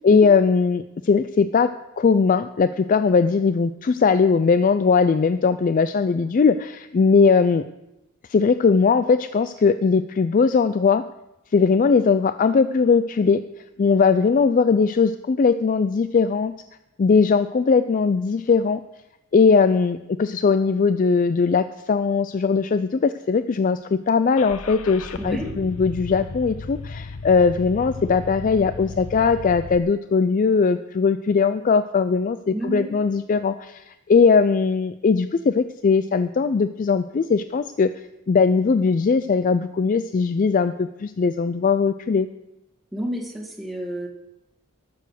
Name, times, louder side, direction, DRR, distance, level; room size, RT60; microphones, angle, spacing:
voice 1, 0.0-7.6 8.3-11.0 11.5-13.4 13.8-16.5 17.0-18.8 19.3-37.9 38.3-42.3, left 5 dB, 40° left, 11 dB, 0.3 m, -19 dB
Car / Engine starting, 24.4-29.8, left 3 dB, 85° left, 0.7 m, -35 dB
voice 2, 25.2-25.6 32.5-33.0 42.9-44.1, right 1 dB, ahead, 1 dB, 1.8 m, -30 dB
12.0 x 6.8 x 6.5 m, 0.90 s
head